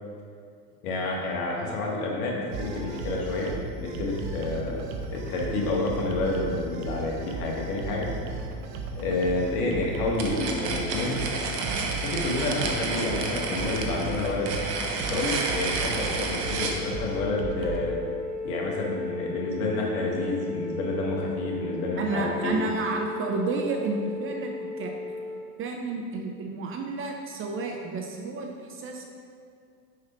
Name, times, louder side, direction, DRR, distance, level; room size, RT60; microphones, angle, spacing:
voice 1, 0.8-8.1 8.9-11.2 11.9-14.5 15.0-17.9 18.4-22.6, left 2 dB, 65° left, -2 dB, 1.6 m, -29 dB
sound 1, 2.5-17.8, right 3 dB, 50° right, 0.8 m, -36 dB
sound 2, 10.2-16.8, right 4 dB, 75° right, 1.1 m, -30 dB
Wind instrument woodwind instrument, 16.3-25.5, left 3 dB, 30° left, 1.1 m, -35 dB
voice 2, 22.0-25.2 25.6-29.0, right 3 dB, 30° right, 2 dB, 0.5 m, -31 dB
5.6 x 4.9 x 4.3 m, 2.3 s
hypercardioid pair, 95°, 48 cm